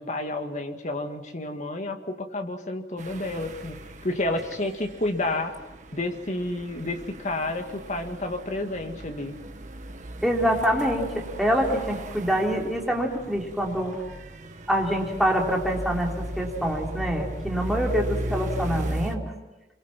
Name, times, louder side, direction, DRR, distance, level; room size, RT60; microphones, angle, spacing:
voice 1, 0.0-3.8 4.0-5.6 5.9-9.4, left 2 dB, 45° left, 5 dB, 2.0 m, -30 dB
sound 1, 3.0-19.2, right 1 dB, 45° right, 1.4 m, -37 dB
voice 2, 10.2-14.0 14.7-19.2, equal, ahead, -1 dB, 3.5 m, -25 dB
27.0 x 23.5 x 6.1 m, 1.1 s
head